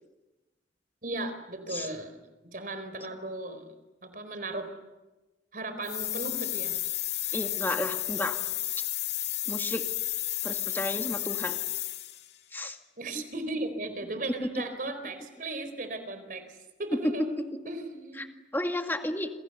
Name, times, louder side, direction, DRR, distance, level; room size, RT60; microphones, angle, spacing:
voice 1, 1.0-2.2 2.5-3.7 4.0-4.7 5.5-6.8 7.2-7.4 13.0-18.2, right 2 dB, 50° right, 9 dB, 4.5 m, -36 dB
sound 1, 5.8-12.3, left 15 dB, 70° left, 1.9 m, -32 dB
voice 2, 7.3-8.4 9.5-9.8 10.4-11.5 12.5-12.8 13.1-13.2 14.4-14.5 17.0-17.1 18.2-18.3 18.5-19.3, left 1 dB, 10° left, 5 dB, 2.0 m, -32 dB
28.0 x 27.5 x 6.9 m, 1.1 s
head